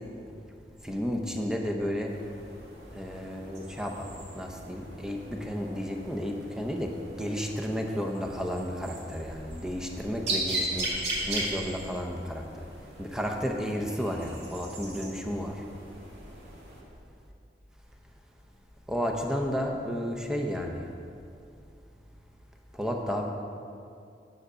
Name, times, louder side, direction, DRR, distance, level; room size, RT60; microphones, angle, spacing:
voice 1, 0.8-2.1 2.9-4.1 4.3-6.9 7.2-11.0 11.3-12.6 13.0-15.6 18.9-20.9 22.7-23.3, equal, 5° right, 2 dB, 0.8 m, -32 dB
sound 1, 2.0-16.8, right 2 dB, 80° right, 2.1 m, -38 dB
9.3 x 8.0 x 4.9 m, 2.5 s
head